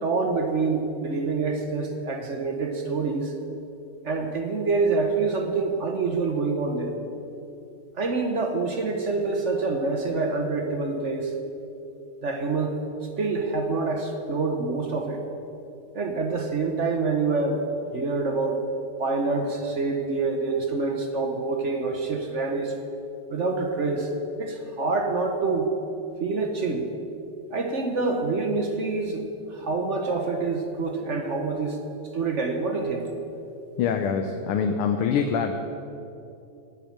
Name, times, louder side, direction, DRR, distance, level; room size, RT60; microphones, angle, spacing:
voice 1, 0.0-3.3 4.0-7.0 7.9-11.3 12.2-12.8 13.2-15.2 15.9-17.6 17.9-18.6 19.0-22.7 23.3-24.1 24.4-25.7 26.2-26.9 27.5-31.8 32.1-33.1, right 3 dB, 50° right, 4 dB, 0.9 m, -26 dB
voice 2, 33.8-35.5, left 6 dB, 85° left, 5 dB, 1.7 m, -24 dB
11.0 x 8.4 x 8.6 m, 2.8 s
omnidirectional pair, 2.4 m